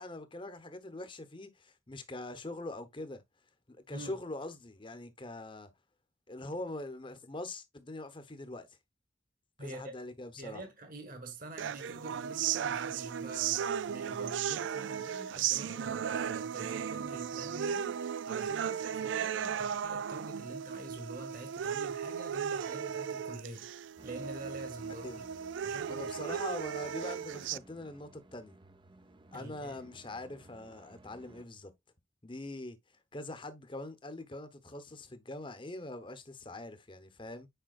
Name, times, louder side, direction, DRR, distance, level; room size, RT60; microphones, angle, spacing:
voice 1, 0.0-3.2 3.7-5.7 6.3-8.8 9.6-10.6 17.3-17.6 25.0-25.2 25.9-28.6 29.3-31.7 32.2-32.8 33.1-37.5, left 2 dB, 25° left, 1.0 m, -43 dB
voice 2, 9.6-10.0 10.4-23.7 24.0-25.2 25.6-26.4 29.3-29.8, right 2 dB, 45° right, 1.7 m, -46 dB
sound 1, 11.6-27.6, right 8 dB, 75° right, 0.3 m, -35 dB
sound 2, 24.0-31.5, right 2 dB, 25° right, 0.6 m, -57 dB
9.0 x 5.0 x 2.4 m
head